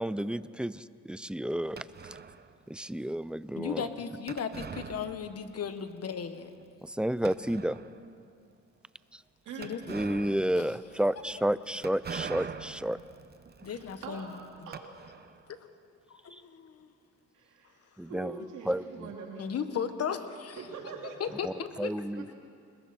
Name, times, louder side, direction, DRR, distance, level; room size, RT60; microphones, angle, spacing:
voice 1, 0.0-1.8 2.7-3.9 6.8-7.8 9.1-9.2 9.9-13.0 16.3-16.4 18.0-18.4 18.7-19.1 21.4-22.3, right 1 dB, 5° right, 16 dB, 0.5 m, -31 dB
sound 1, 1.8-2.5 4.3-5.6 5.9-6.0 6.6-6.7 7.2-8.1 9.6-15.5, right 6 dB, 35° right, 0.9 m, -44 dB
voice 2, 3.5-6.5 9.6-9.8 10.6-10.7 13.6-14.3 14.6-14.7 15.5-15.6 16.1-16.9 19.4-20.6 21.2-21.9, left 7 dB, 55° left, 9 dB, 1.5 m, -36 dB
voice 3, 13.6-14.3 14.7-14.8 17.3-19.6 20.5-21.4 22.1-22.3, right 5 dB, 80° right, 0 dB, 2.8 m, -44 dB
29.5 x 21.0 x 4.4 m, 2.3 s
cardioid pair, 90°, 30 cm